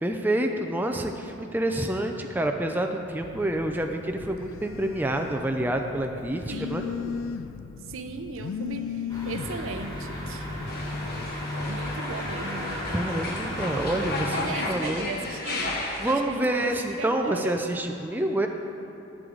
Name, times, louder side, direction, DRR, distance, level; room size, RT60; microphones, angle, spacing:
voice 1, 0.0-6.9 12.9-15.1 16.0-18.5, right 1 dB, 10° right, 3 dB, 0.3 m, -28 dB
Telephone, 3.2-11.3, left 7 dB, 75° left, 0.3 m, -37 dB
voice 2, 6.5-7.2 7.9-10.5 11.7-12.8 14.3-15.8 16.0-17.6, right 3 dB, 75° right, 8 dB, 0.6 m, -37 dB
sound 1, 9.1-14.3, left 1 dB, 15° left, 1.5 m, -34 dB
sound 2, 10.7-16.1, left 2 dB, 45° left, 1.0 m, -34 dB
11.0 x 7.7 x 3.8 m, 3.0 s
head